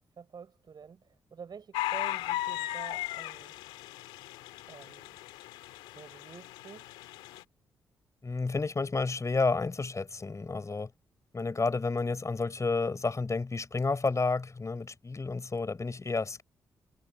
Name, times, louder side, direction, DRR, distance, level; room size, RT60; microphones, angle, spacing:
voice 1, 0.2-1.0 1.3-3.6 4.7-5.2 6.0-6.9, right 6 dB, 55° right, 6.0 m, -48 dB
sound 1, 1.7-7.4, left 15 dB, 85° left, 2.2 m, -37 dB
voice 2, 8.2-10.9 11.3-16.4, left 3 dB, 35° left, 4.9 m, -30 dB
hypercardioid pair, 40°, 9 cm